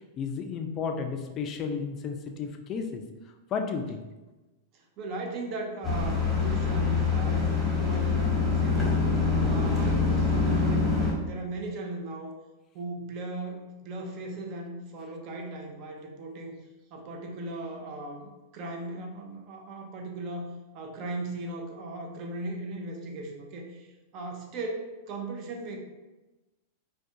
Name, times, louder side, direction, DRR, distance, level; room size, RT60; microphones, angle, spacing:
voice 1, 0.2-3.0 3.5-4.0, left 5 dB, 35° left, 5 dB, 0.3 m, -32 dB
voice 2, 4.7-9.0 9.4-12.4 12.7-16.6 16.9-25.8, right 2 dB, 45° right, 2 dB, 0.5 m, -37 dB
sound 1, 5.8-11.1, left 4 dB, 5° left, 1.0 m, -25 dB
2.4 x 2.2 x 2.6 m, 1.1 s
hypercardioid pair, 125°, 0 cm